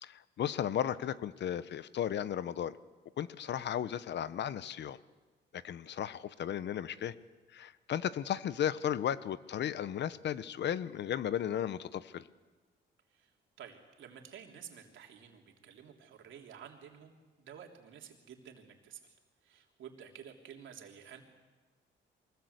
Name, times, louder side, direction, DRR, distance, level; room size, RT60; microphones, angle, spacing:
voice 1, 0.0-2.8 3.2-5.0 5.5-7.1 7.5-12.2, left 10 dB, 60° left, 16 dB, 1.0 m, -35 dB
voice 2, 13.6-19.2 19.4-21.2, right 8 dB, 75° right, 2 dB, 3.4 m, -51 dB
23.5 x 20.5 x 8.2 m, 1.3 s
cardioid pair, 90°, 20 cm